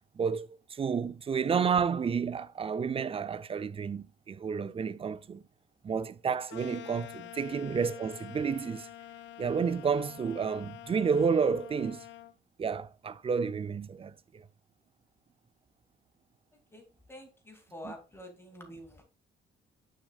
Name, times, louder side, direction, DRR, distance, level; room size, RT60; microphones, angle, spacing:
voice 1, 0.2-5.4 5.8-8.9 9.4-12.1 12.6-14.4 17.8-17.9, right 6 dB, 30° right, 0.5 m, -30 dB
sound 1, 6.5-12.3, left 12 dB, 65° left, 0.5 m, -47 dB
voice 2, 16.7-19.0, equal, 10° left, 2.4 m, -48 dB
6.4 x 6.2 x 2.4 m
cardioid pair, 90°, 20 cm